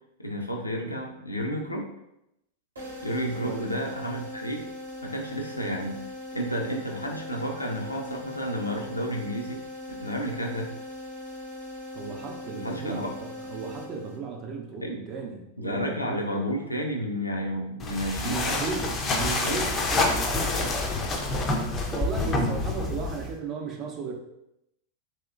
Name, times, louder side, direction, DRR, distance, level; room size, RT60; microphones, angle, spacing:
voice 1, 0.2-1.9 3.0-4.7 5.0-6.0 6.3-9.6 10.0-10.7 12.6-13.1 14.8-15.0 15.6-18.6 19.0-19.1 19.4-19.8, equal, 85° left, 1 dB, 0.4 m, -31 dB
sound 1, 2.8-14.5, left 1 dB, 70° right, 0.8 m, -40 dB
voice 2, 3.2-3.8 11.9-16.2 18.2-20.8 21.9-24.1, right 5 dB, 35° right, 2 dB, 0.5 m, -35 dB
sound 2, 17.8-23.4, left 2 dB, 25° left, 0.4 m, -27 dB
3.1 x 2.8 x 2.4 m, 0.84 s
figure-of-eight pair, 90°, 0 cm